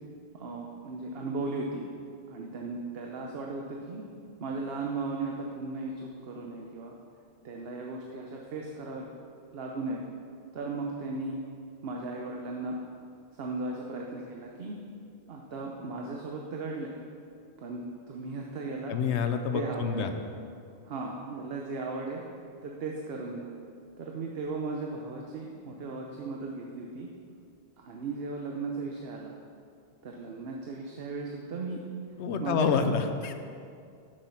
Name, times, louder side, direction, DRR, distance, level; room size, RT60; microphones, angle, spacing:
voice 1, 0.3-1.9 2.3-4.0 4.4-6.9 7.4-9.1 9.5-10.0 10.5-11.4 11.8-12.8 13.3-14.8 15.3-16.9 17.6-19.0 19.5-20.1 20.8-22.2 22.6-23.5 24.0-27.1 27.8-29.4 30.0-31.8 32.4-32.7, right 3 dB, 60° right, 0 dB, 1.0 m, -36 dB
voice 2, 18.9-20.1 32.2-33.3, left 6 dB, 75° left, 7 dB, 1.0 m, -28 dB
8.2 x 7.2 x 5.7 m, 2.4 s
omnidirectional pair, 1.2 m